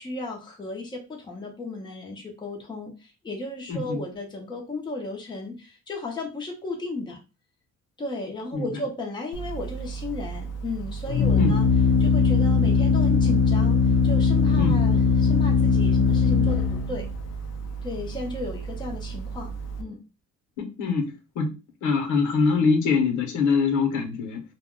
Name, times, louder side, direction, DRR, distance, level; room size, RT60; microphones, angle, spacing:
voice 1, 0.0-7.2 8.0-11.7 12.0-17.1 17.8-19.5 19.8-20.0, left 2 dB, 15° left, 0 dB, 0.7 m, -34 dB
voice 2, 3.7-4.0 8.5-8.7 11.4-11.6 14.6-14.8 20.6-21.5 21.8-24.4, left 4 dB, 85° left, 4 dB, 0.9 m, -24 dB
Organ, 9.3-19.8, left 4 dB, 60° left, 0.5 m, -21 dB
2.3 x 2.1 x 3.6 m, 0.29 s
cardioid pair, 145°, 30 cm